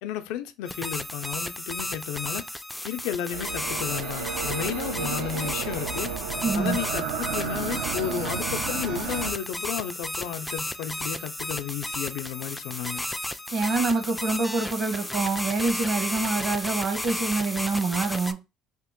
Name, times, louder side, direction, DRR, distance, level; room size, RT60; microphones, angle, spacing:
voice 1, 0.0-2.5 2.8-6.1 6.5-13.0, left 10 dB, 80° left, 0.4 m, -33 dB
sound 1, 0.7-18.3, left 1 dB, 5° left, 0.3 m, -33 dB
sound 2, 3.3-9.3, right 7 dB, 85° right, 0.5 m, -32 dB
voice 2, 6.4-6.8 13.5-18.4, right 3 dB, 55° right, 1.2 m, -26 dB
2.9 x 2.5 x 3.6 m
supercardioid pair, 90°, 0 cm